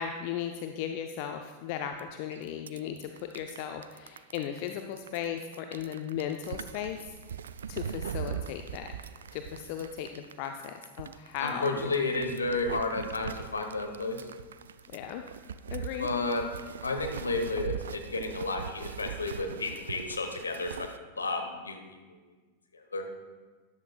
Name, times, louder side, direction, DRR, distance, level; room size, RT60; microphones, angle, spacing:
voice 1, 0.0-7.2 7.7-8.9 9.3-11.9 14.9-15.2 15.7-16.1, left 9 dB, 45° left, 6 dB, 0.5 m, -36 dB
sound 1, 2.0-2.1 2.3-21.0, right 8 dB, 65° right, 0.3 m, -41 dB
voice 2, 11.4-14.2 16.0-16.5 16.8-22.0 22.9-23.0, left 3 dB, 75° left, 4 dB, 1.2 m, -32 dB
13.5 x 10.5 x 2.4 m, 1.4 s
figure-of-eight pair, 90°, 0 cm